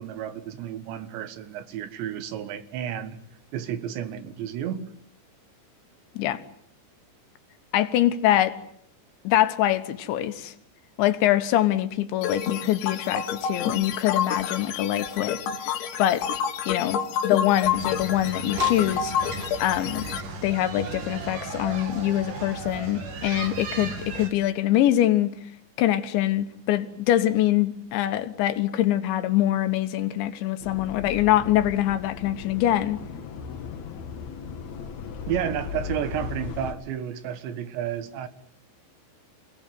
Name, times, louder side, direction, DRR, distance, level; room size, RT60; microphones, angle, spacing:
voice 1, 0.0-3.2 3.5-4.9 35.3-38.3, right 10 dB, 80° right, 3.8 m, -31 dB
voice 2, 7.7-8.6 9.3-10.5 11.0-15.4 16.0-16.3 16.7-19.1 19.6-20.1 20.4-25.4 25.8-33.0, left 13 dB, 85° left, 3.7 m, -24 dB
sound 1, 12.2-20.2, left 8 dB, 70° left, 3.7 m, -29 dB
sound 2, 17.7-24.3, right 4 dB, 50° right, 4.0 m, -36 dB
sound 3, 30.6-36.7, left 6 dB, 55° left, 2.3 m, -37 dB
28.5 x 19.0 x 9.3 m
omnidirectional pair, 5.1 m